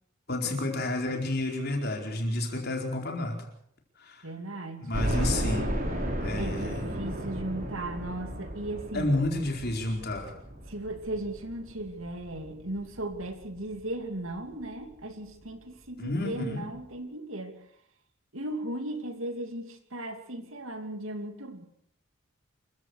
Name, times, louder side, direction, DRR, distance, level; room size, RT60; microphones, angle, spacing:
voice 1, 0.3-3.4 4.0-4.2 4.8-5.7 6.2-6.8 8.9-10.3 16.0-16.7, left 2 dB, 50° left, 2 dB, 4.6 m, -30 dB
voice 2, 4.2-4.9 6.4-9.2 10.7-17.6 18.3-21.6, right 1 dB, 70° right, 7 dB, 2.7 m, -36 dB
sound 1, 4.9-13.8 14.3-14.4 14.8-14.9 16.1-16.2 16.5-16.6, equal, 40° right, 4.6 m, -34 dB
27.0 x 15.5 x 6.5 m, 0.67 s
head